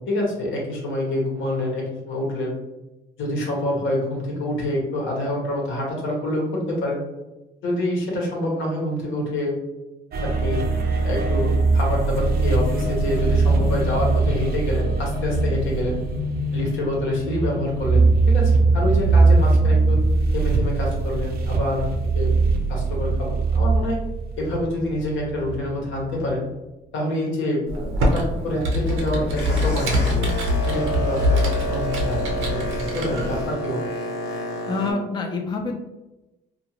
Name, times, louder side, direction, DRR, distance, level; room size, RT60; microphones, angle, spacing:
voice 1, 0.1-2.5 3.2-7.0 7.6-9.6 10.2-10.6 11.0-16.0 16.5-20.0 20.3-21.9 22.1-22.3 22.7-24.0 24.4-26.5 26.9-27.6 28.0-29.9 30.7-33.9, left 1 dB, 75° left, -2 dB, 1.1 m, -26 dB
sound 1, 10.1-25.6 26.0-26.3, right 3 dB, 50° right, 0.5 m, -21 dB
Computer keyboard, 27.7-33.5, left 1 dB, 85° right, 0.8 m, -24 dB
Boat Water vehicle, 28.7-34.9, equal, 55° left, 0.9 m, -29 dB
voice 2, 34.7-35.8, left 3 dB, 25° left, 3 dB, 0.4 m, -27 dB
2.5 x 2.4 x 3.0 m, 1.0 s
cardioid pair, 90°, 20 cm